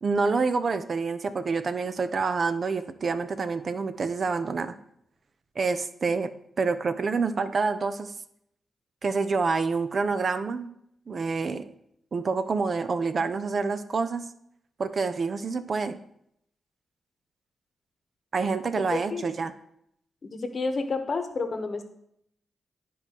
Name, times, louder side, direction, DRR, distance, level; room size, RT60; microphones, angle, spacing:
voice 1, 0.0-4.7 5.6-6.3 6.6-8.1 9.0-10.7 11.1-11.7 12.1-14.2 14.8-16.0 18.3-19.5, right 4 dB, 55° right, 11 dB, 0.5 m, -27 dB
voice 2, 20.2-21.8, left 3 dB, 50° left, 7 dB, 1.0 m, -30 dB
12.0 x 4.6 x 2.9 m, 0.74 s
cardioid pair, 65°, 0 cm